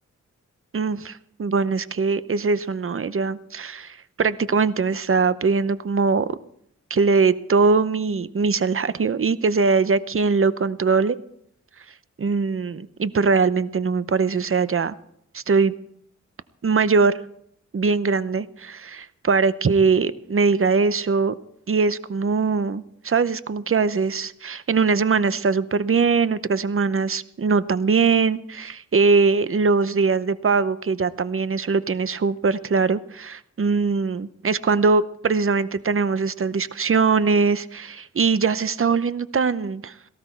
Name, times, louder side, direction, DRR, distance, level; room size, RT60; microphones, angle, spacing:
voice 1, 0.7-6.4 6.9-11.2 12.2-15.0 15.3-15.7 16.6-17.2 17.7-21.4 21.7-39.9, right 4 dB, 45° right, 14 dB, 0.8 m, -21 dB
17.5 x 15.5 x 4.5 m, 0.72 s
wide cardioid pair, 85°, 31 cm